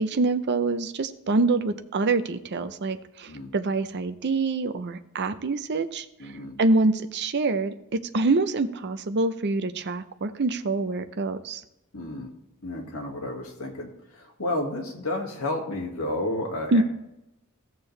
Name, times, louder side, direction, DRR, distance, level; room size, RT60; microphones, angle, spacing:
voice 1, 0.0-6.1 6.6-11.6 16.7-16.8, right 3 dB, 50° right, 9 dB, 0.6 m, -25 dB
voice 2, 6.2-6.6 11.9-12.3 12.6-16.8, left 1 dB, 70° left, -1 dB, 2.0 m, -31 dB
15.0 x 6.7 x 3.3 m, 0.85 s
head